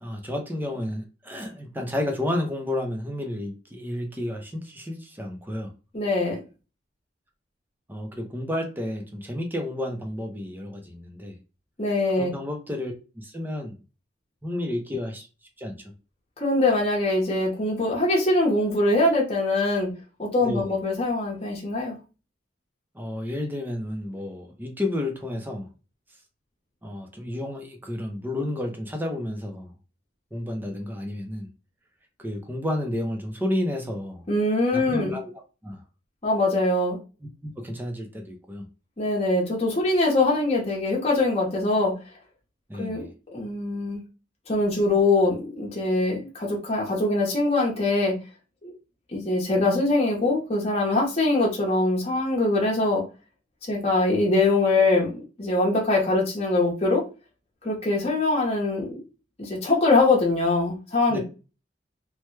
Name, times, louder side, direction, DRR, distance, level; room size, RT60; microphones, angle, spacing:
voice 1, 0.0-5.7 7.9-11.4 12.1-13.7 14.4-15.3 15.6-15.9 20.4-20.7 22.9-25.7 26.8-29.7 30.3-31.5 32.2-34.3 34.7-35.3 35.6-35.8 37.4-38.7 42.7-43.1 61.1-61.2, left 1 dB, 10° right, 0.6 m, -31 dB
voice 2, 5.9-6.4 11.8-12.3 16.4-19.9 20.2-22.0 34.3-35.1 36.2-37.0 39.0-41.9 42.8-43.1 43.3-44.0 44.5-48.1 48.6-48.7 49.1-53.0 53.7-55.1 55.4-57.0 57.6-59.0 59.4-61.2, left 2 dB, 35° left, 0.9 m, -23 dB
3.2 x 2.2 x 3.1 m
head